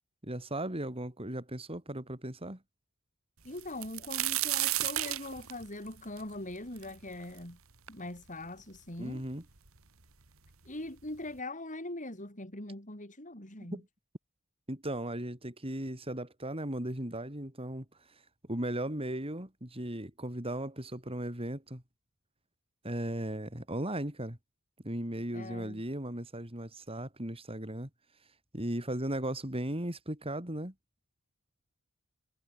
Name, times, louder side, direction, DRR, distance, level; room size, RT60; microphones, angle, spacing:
voice 1, 0.2-2.6 9.0-9.4 13.6-13.9 14.7-17.8 18.5-21.8 22.8-24.4 24.8-27.9 28.5-30.7, right 1 dB, 25° right, 4.3 m, -36 dB
voice 2, 3.4-7.6 7.9-9.2 10.7-13.8 25.3-25.8, left 1 dB, 35° left, 6.9 m, -42 dB
sound 1, 3.6-7.4 7.9-8.0 8.7-8.8 9.1-9.8 10.7-10.8 11.1-11.3, right 15 dB, 75° right, 2.4 m, -33 dB
head